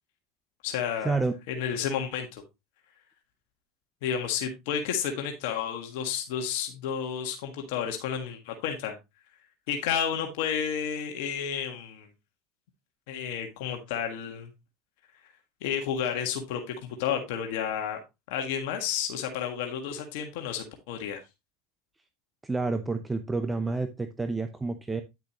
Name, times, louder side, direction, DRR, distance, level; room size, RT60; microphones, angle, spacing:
voice 1, 0.6-1.2 1.5-2.4 4.0-9.0 9.7-12.1 13.1-14.5 15.6-18.0 18.3-21.2, left 8 dB, 70° left, 4 dB, 1.6 m, -31 dB
voice 2, 22.4-25.0, right 3 dB, 10° right, 9 dB, 0.8 m, -29 dB
10.0 x 6.6 x 2.9 m, 0.23 s
supercardioid pair, 110°, 0 cm